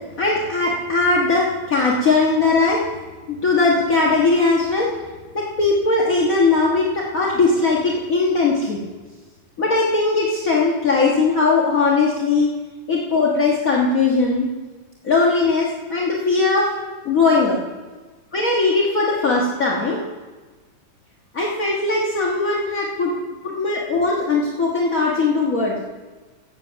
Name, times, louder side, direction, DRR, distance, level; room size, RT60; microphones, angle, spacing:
voice 1, 0.2-2.8 3.3-4.9 5.3-8.8 9.6-12.5 12.9-14.5 15.0-16.7 17.0-17.6 18.3-20.0 21.3-23.1 23.4-25.7, left 3 dB, 50° left, -3 dB, 1.0 m, -19 dB
15.5 x 7.9 x 5.8 m, 1.3 s
omnidirectional pair, 3.7 m